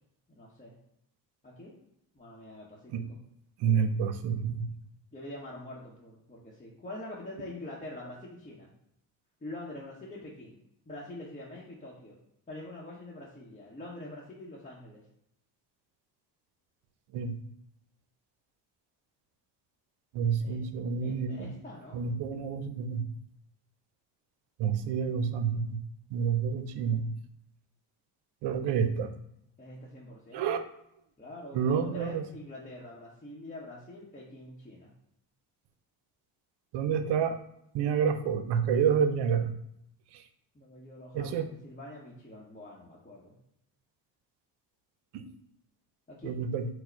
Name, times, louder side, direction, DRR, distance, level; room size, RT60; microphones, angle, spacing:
voice 1, 0.3-0.7 1.4-1.7 2.1-3.2 5.1-8.7 9.4-10.6 10.9-12.2 12.5-15.0 20.2-20.7 21.0-22.0 28.6-28.8 29.6-30.5 31.2-34.9 40.5-43.3 46.1-46.3, left 1 dB, 20° left, -5 dB, 0.9 m, -45 dB
voice 2, 3.6-4.7 17.1-17.3 20.1-21.5 21.9-23.0 24.6-25.8 26.1-27.1 28.4-29.1 30.3-30.6 31.5-32.2 36.7-37.4 37.7-39.5 41.1-41.5 45.1-45.2 46.2-46.7, right 7 dB, 70° right, 9 dB, 0.6 m, -28 dB
4.5 x 2.1 x 4.5 m, 0.76 s
cardioid pair, 100°, 43 cm